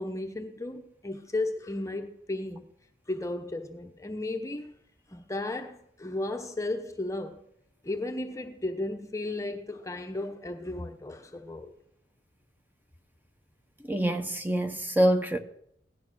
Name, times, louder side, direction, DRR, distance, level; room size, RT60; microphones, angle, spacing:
voice 1, 0.0-2.7 3.1-4.7 5.1-7.4 7.8-11.7, left 2 dB, 15° left, 1.0 m, -34 dB
voice 2, 13.9-15.4, right 1 dB, 10° right, 1.1 m, -25 dB
17.5 x 12.0 x 6.4 m
head